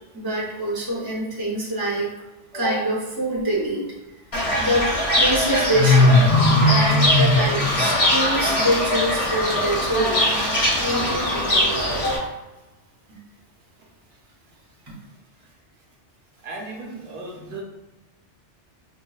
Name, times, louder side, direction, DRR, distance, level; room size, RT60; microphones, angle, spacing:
voice 1, 0.1-2.1 2.5-3.8 4.6-10.3 10.8-12.3 13.1-13.2 14.9-15.0, right 1 dB, 25° right, -6 dB, 0.7 m, -25 dB
Fowl / Bird, 4.3-12.2, left 1 dB, 35° left, 0.6 m, -19 dB
voice 2, 16.4-17.6, right 3 dB, 60° right, -3 dB, 1.0 m, -36 dB
5.1 x 2.2 x 2.3 m, 1.1 s
omnidirectional pair, 1.2 m